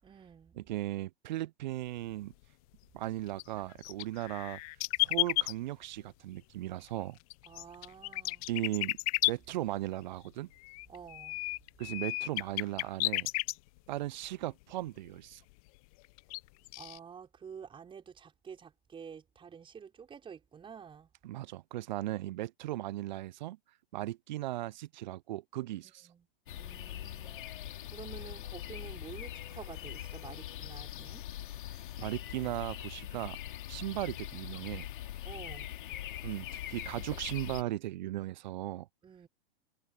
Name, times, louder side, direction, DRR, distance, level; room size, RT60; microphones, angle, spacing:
voice 1, 0.0-0.6 7.4-8.4 10.9-11.4 16.8-21.1 25.8-26.3 26.5-27.6 27.9-31.2 35.2-35.7 39.0-39.3, right 7 dB, 15° right, 5.9 m, -49 dB
voice 2, 0.6-2.3 2.9-4.6 5.0-7.2 8.5-9.0 9.3-10.5 11.8-13.3 13.9-15.4 21.2-23.6 23.9-26.1 32.0-33.4 33.7-34.9 36.2-38.9, right 15 dB, 50° right, 0.6 m, -37 dB
sound 1, 3.1-3.2 3.4-5.5 7.3-9.3 10.5-13.5 14.2-14.3 15.6-15.7 16.0-16.4 16.7-17.0, left 24 dB, 35° left, 0.7 m, -32 dB
sound 2, 26.5-37.6, left 12 dB, 55° left, 2.6 m, -42 dB
figure-of-eight pair, 105°, 30 cm